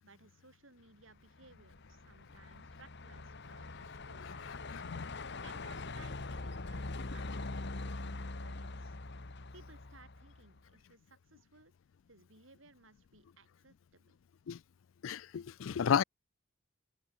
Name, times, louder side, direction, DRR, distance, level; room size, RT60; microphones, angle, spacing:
voice 1, 0.0-4.7 5.4-9.0 9.5-11.7 12.1-14.1, right 3 dB, 75° right, 7.6 m, -61 dB
Truck, 1.2-10.6, left 2 dB, 60° left, 1.5 m, -43 dB
voice 2, 4.7-5.1 14.5-14.6 15.0-16.0, left 7 dB, 80° left, 0.4 m, -32 dB
head